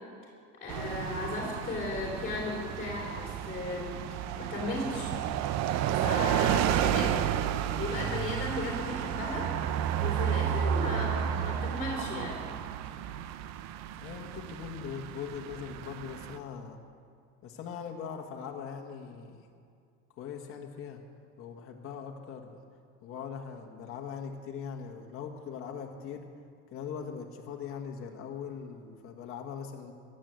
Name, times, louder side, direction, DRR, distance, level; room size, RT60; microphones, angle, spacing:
voice 1, 0.6-4.0 4.4-5.2 5.9-7.1 7.8-9.4 10.0-12.5, left 2 dB, 30° left, -3 dB, 3.6 m, -35 dB
sound 1, 0.7-16.4, right 10 dB, 60° right, 0.8 m, -32 dB
voice 2, 14.0-16.8 17.4-19.5 20.1-21.0 21.4-22.6 23.0-26.3 26.7-29.9, left 7 dB, 45° left, 1 dB, 1.6 m, -41 dB
16.0 x 10.5 x 7.8 m, 2.3 s
cardioid pair, 135°, 30 cm